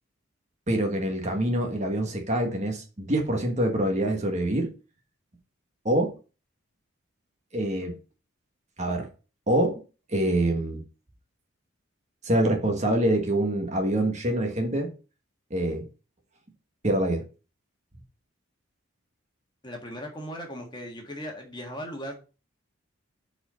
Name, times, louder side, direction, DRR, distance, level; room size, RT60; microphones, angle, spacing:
voice 1, 0.7-4.7 5.8-6.1 7.5-7.9 8.8-9.1 9.5-9.8 10.1-10.8 12.2-14.9 15.5-15.9 16.8-17.2, right 1 dB, 35° right, 1.4 m, -25 dB
voice 2, 19.6-22.2, equal, 20° left, 1.6 m, -38 dB
5.5 x 4.5 x 5.7 m
head